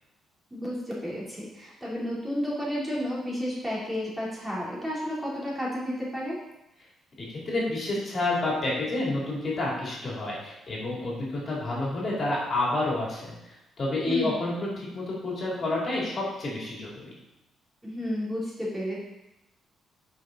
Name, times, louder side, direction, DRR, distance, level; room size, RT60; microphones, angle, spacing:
voice 1, 0.5-6.4 14.1-14.4 17.8-19.0, equal, 10° right, -6 dB, 3.3 m, -32 dB
voice 2, 7.2-17.1, left 2 dB, 45° left, -4 dB, 3.1 m, -29 dB
9.4 x 5.6 x 4.0 m, 0.93 s
cardioid pair, 90°, 0 cm